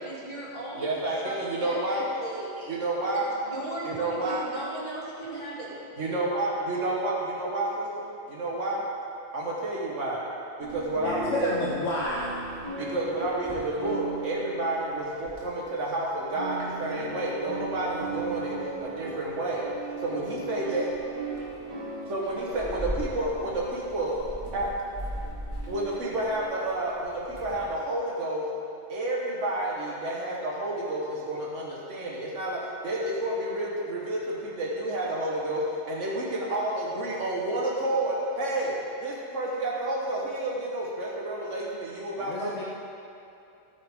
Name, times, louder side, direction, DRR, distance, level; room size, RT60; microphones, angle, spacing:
voice 1, 0.0-1.0 1.2-2.6 3.1-5.7, right 1 dB, 35° left, -7 dB, 2.5 m, -37 dB
voice 2, 0.7-2.1 2.6-3.3 3.8-4.5 6.0-8.9 9.3-10.2 10.6-11.5 12.8-18.5 18.8-19.7 20.0-20.9 22.1-24.7 25.6-28.4 28.9-38.7 39.0-42.7, right 1 dB, 80° right, -4 dB, 1.7 m, -30 dB
sound 1, 10.6-27.6, right 3 dB, 25° right, 2.1 m, -37 dB
voice 3, 11.0-12.3 42.1-42.7, left 2 dB, 85° left, -4 dB, 1.3 m, -31 dB
13.5 x 8.9 x 3.7 m, 2.6 s
omnidirectional pair, 1.2 m